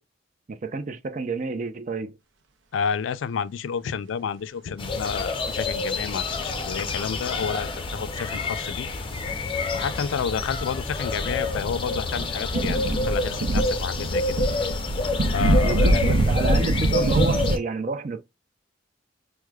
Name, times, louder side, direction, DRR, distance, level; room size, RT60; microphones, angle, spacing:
voice 1, 0.5-2.2 15.6-18.2, right 3 dB, 40° right, 0.4 m, -30 dB
voice 2, 2.7-8.9 9.7-14.4 15.3-16.0, left 6 dB, 90° left, 0.3 m, -30 dB
sound 1, 4.8-17.6, left 3 dB, 25° left, 0.5 m, -28 dB
sound 2, 11.0-17.6, right 1 dB, 90° right, 0.5 m, -24 dB
4.7 x 2.1 x 2.3 m
head